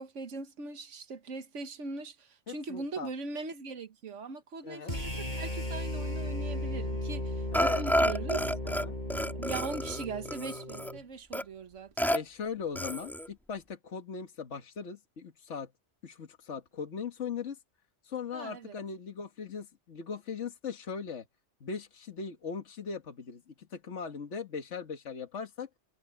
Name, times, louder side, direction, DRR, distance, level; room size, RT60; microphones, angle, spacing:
voice 1, 0.0-8.4 9.3-12.1 18.3-18.7, right 4 dB, 80° right, 1.6 m, -40 dB
voice 2, 2.5-3.1 4.6-5.0 7.5-7.8 8.6-9.0 12.1-15.7 16.0-17.6 18.0-21.3 21.6-25.7, left 6 dB, 70° left, 1.8 m, -39 dB
sound 1, 4.9-11.0, left 1 dB, 40° left, 6.6 m, -36 dB
Burping eructation, 7.5-8.9 9.1-10.9 11.3-11.4 12.0-12.2 12.8-13.3, equal, ahead, 2.6 m, -30 dB
omnidirectional pair, 1.2 m